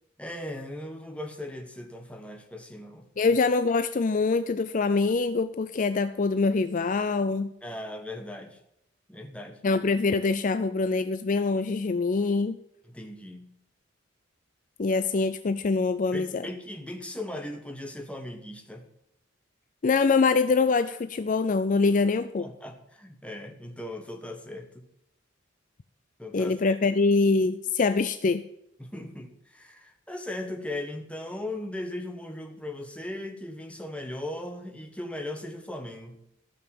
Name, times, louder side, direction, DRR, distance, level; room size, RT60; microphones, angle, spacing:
voice 1, 0.2-3.1 7.6-8.6 9.1-9.6 12.9-13.5 16.1-18.8 22.4-24.9 26.2-26.8 28.8-36.2, left 1 dB, 5° left, 4 dB, 1.4 m, -38 dB
voice 2, 3.2-7.5 9.6-12.6 14.8-16.4 19.8-22.5 26.3-28.4, left 4 dB, 40° left, 12 dB, 0.4 m, -24 dB
15.0 x 5.6 x 7.6 m, 0.80 s
head